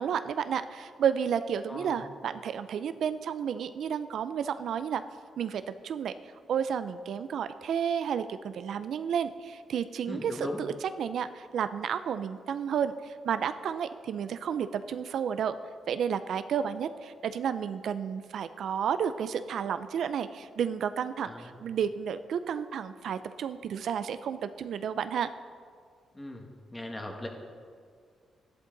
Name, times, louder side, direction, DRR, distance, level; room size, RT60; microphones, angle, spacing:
voice 1, 0.0-5.0 5.4-6.1 6.5-15.6 15.9-25.3, right 8 dB, 70° right, 11 dB, 0.4 m, -31 dB
voice 2, 1.7-2.0 10.1-10.6 21.2-21.6 26.1-26.4 26.7-27.3, left 1 dB, 20° left, 2 dB, 1.7 m, -38 dB
13.0 x 11.5 x 3.9 m, 2.1 s
cardioid pair, 105°, 0 cm